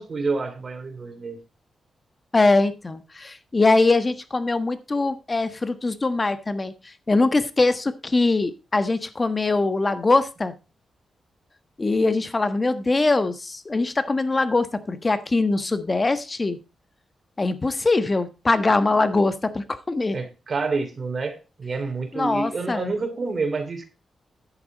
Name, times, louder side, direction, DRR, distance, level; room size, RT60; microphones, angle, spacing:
voice 1, 0.0-1.4 20.1-23.9, right 4 dB, 50° right, 3.1 m, -28 dB
voice 2, 2.3-10.5 11.8-16.6 17.4-20.2 22.1-22.9, left 3 dB, 30° left, 1.3 m, -22 dB
10.5 x 8.6 x 4.0 m
cardioid pair, 75°, 0 cm